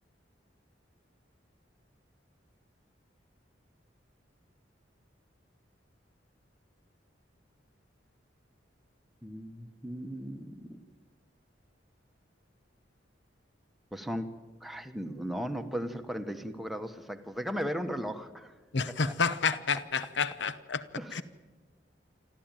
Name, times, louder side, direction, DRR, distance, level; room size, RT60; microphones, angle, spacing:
voice 1, 9.2-10.8 13.9-14.3 14.6-18.5 18.9-19.2 19.7-19.8 21.0-21.2, equal, ahead, 1.1 m, -37 dB
voice 2, 18.7-20.8 21.1-21.2, left 5 dB, 75° left, 0.8 m, -29 dB
27.5 x 13.0 x 9.0 m
head